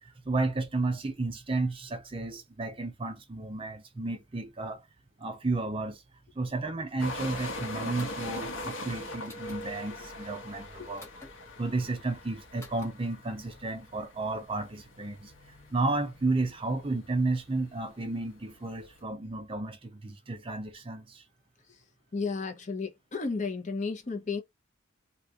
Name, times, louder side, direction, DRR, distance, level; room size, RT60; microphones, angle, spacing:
voice 1, 0.0-4.9 5.2-6.0 6.4-11.1 11.6-15.3 15.7-21.2, right 2 dB, 25° right, 0.5 m, -32 dB
sound 1, 7.0-19.0, left 1 dB, 70° left, 0.9 m, -42 dB
sound 2, 8.0-8.3 9.2-9.6 11.0-11.3 12.6-12.9, left 2 dB, 15° left, 1.0 m, -49 dB
voice 2, 22.1-24.4, left 4 dB, 35° left, 0.7 m, -33 dB
2.8 x 2.4 x 3.5 m
head